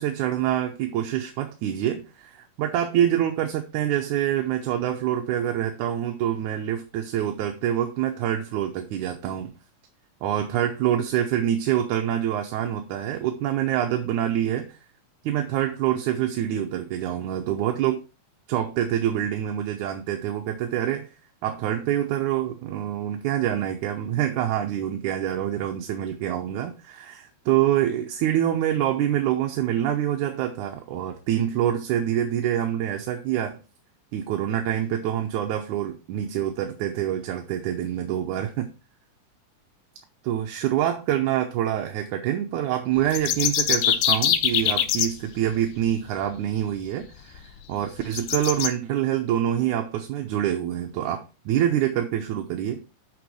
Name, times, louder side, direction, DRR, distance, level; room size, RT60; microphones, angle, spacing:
voice 1, 0.0-9.5 10.2-14.8 15.2-18.0 18.5-21.1 21.4-33.6 34.1-38.7 40.2-52.8, right 11 dB, 75° right, 4 dB, 2.2 m, -26 dB
sound 1, 43.0-45.1 46.9-47.0 47.4-47.5 48.1-48.7, left 10 dB, 80° left, 2.2 m, -22 dB
6.8 x 6.2 x 4.8 m, 0.32 s
omnidirectional pair, 3.7 m